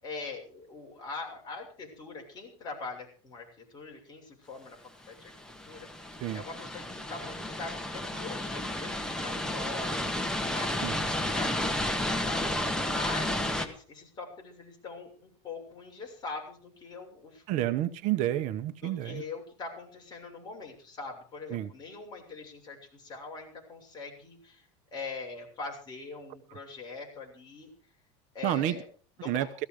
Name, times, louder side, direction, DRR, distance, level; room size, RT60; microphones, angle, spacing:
voice 1, 0.0-4.8 5.1-5.3 5.6-17.7 18.8-24.7 24.9-27.7 28.3-28.9 29.2-29.4, left 3 dB, 25° left, 0 dB, 7.1 m, -43 dB
sound 1, 5.3-13.7, left 1 dB, 5° left, 1.6 m, -32 dB
voice 2, 17.5-19.2 21.5-21.7 28.4-28.8 29.2-29.5, right 13 dB, 50° right, 11 dB, 1.0 m, -29 dB
17.5 x 14.5 x 5.0 m, 0.43 s
supercardioid pair, 145°, 16 cm